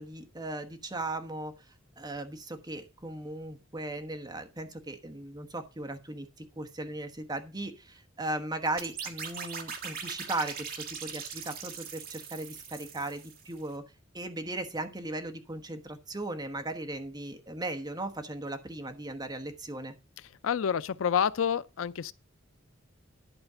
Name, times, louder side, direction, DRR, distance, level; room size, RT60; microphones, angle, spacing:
voice 1, 0.0-1.5 2.0-13.8 14.1-19.9, right 2 dB, 20° right, 1.3 m, -37 dB
sound 1, 8.8-13.6, right 6 dB, 50° right, 1.8 m, -41 dB
voice 2, 20.4-22.1, left 8 dB, 80° left, 0.4 m, -28 dB
11.0 x 4.3 x 6.8 m
head